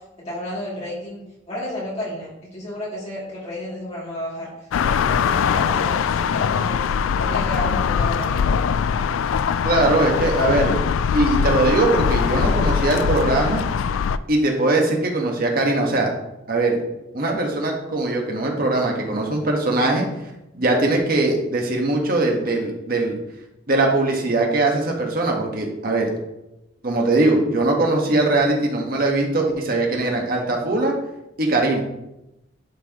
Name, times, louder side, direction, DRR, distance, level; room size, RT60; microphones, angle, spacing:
voice 1, 0.2-1.2 1.5-4.5 4.8-6.8 7.2-8.4, left 1 dB, 35° left, -7 dB, 2.7 m, -31 dB
sound 1, 4.7-14.2, left 6 dB, 85° left, 0.3 m, -21 dB
voice 2, 9.6-10.8 11.1-13.6 14.3-16.1 16.5-16.8 17.1-20.0 20.5-23.1 23.7-26.1 26.8-30.9 31.4-31.8, right 2 dB, 45° right, 0 dB, 1.5 m, -21 dB
11.0 x 4.7 x 3.0 m, 0.91 s
head